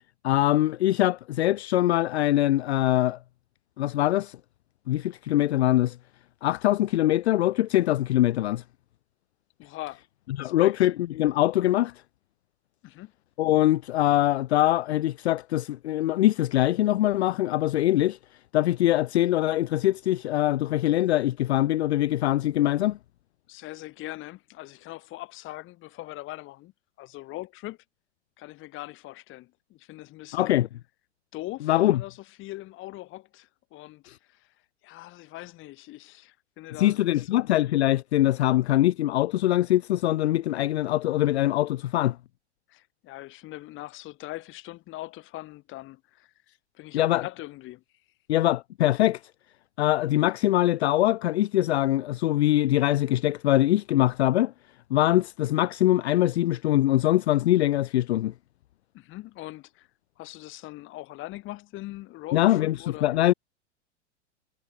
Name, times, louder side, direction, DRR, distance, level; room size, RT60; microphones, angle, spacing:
voice 1, 0.2-3.2 3.8-4.4 4.9-6.0 6.4-8.6 10.4-11.9 13.4-18.2 18.5-23.0 30.3-30.7 31.7-32.0 34.1-34.2 36.8-42.2 46.9-47.2 48.3-49.2 49.8-54.5 54.9-58.3 62.3-63.3, left 14 dB, 65° left, 0.5 m, -23 dB
voice 2, 9.6-10.0 10.4-10.7 12.8-13.1 23.5-26.7 27.0-27.8 28.4-30.6 31.3-34.5 34.8-37.4 42.7-46.3 46.7-47.8 58.9-59.9 60.2-63.1, left 18 dB, 35° left, 1.9 m, -41 dB
figure-of-eight pair, 95°, 35 cm